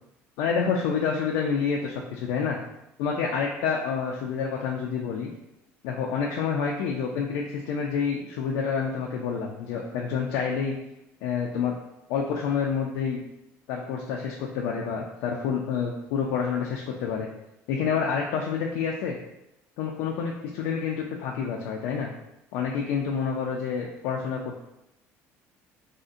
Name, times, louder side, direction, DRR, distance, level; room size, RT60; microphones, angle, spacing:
voice 1, 0.4-2.6 3.0-5.3 5.8-10.8 11.2-11.7 12.1-13.2 13.7-17.3 17.7-19.2 19.8-22.1 22.5-24.6, left 6 dB, 85° left, -1 dB, 0.4 m, -28 dB
3.7 x 2.1 x 2.6 m, 0.87 s
cardioid pair, 130°, 6 cm